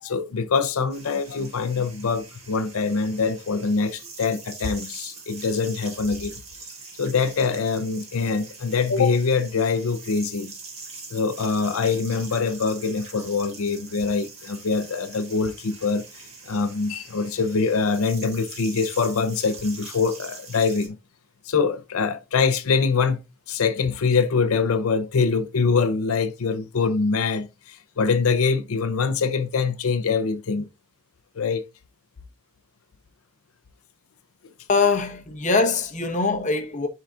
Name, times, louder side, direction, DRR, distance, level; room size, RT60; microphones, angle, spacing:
voice 1, 0.0-6.4 7.0-10.5 11.1-16.0 16.5-21.0 21.4-23.2 23.5-30.7 31.4-31.6, left 5 dB, 80° left, 0.6 m, -24 dB
sound 1, 0.9-20.9, right 4 dB, 30° right, 2.3 m, -43 dB
voice 2, 34.7-36.9, left 4 dB, 35° left, 1.0 m, -22 dB
11.5 x 3.9 x 2.4 m
head